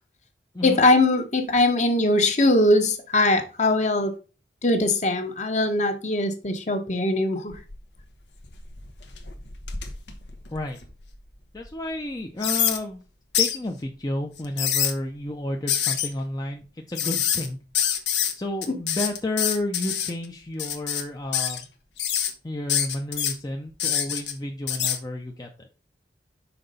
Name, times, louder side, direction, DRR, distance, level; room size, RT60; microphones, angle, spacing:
voice 1, 0.6-4.1 4.6-7.6 18.7-18.8, left 2 dB, 40° left, 6 dB, 1.1 m, -21 dB
sound 1, 7.5-8.0 8.4-11.1 11.6-11.7 12.4-12.8 13.3-13.6 14.4-14.9 15.7-16.1 17.0-17.5 17.7-18.3 18.6-20.1 20.6-21.0 21.3-21.6 22.0-22.3 22.7-23.3 23.8-24.3 24.7-25.0, left 9 dB, 85° left, 1.1 m, -25 dB
voice 2, 11.5-13.0 13.4-17.6 18.3-21.7 22.4-25.7, left 1 dB, 20° left, 2 dB, 0.6 m, -31 dB
5.9 x 3.8 x 5.3 m, 0.33 s
head